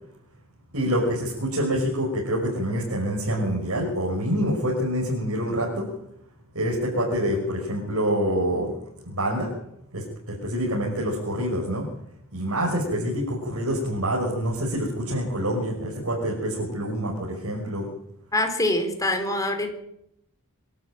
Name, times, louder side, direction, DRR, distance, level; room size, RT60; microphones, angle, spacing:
voice 1, 0.7-5.9 6.5-8.7 9.0-9.5 9.9-11.8 12.3-17.9, equal, 70° right, -4 dB, 6.0 m, -26 dB
voice 2, 18.3-19.7, left 1 dB, 15° left, 5 dB, 4.0 m, -24 dB
26.0 x 12.5 x 9.1 m, 0.76 s
head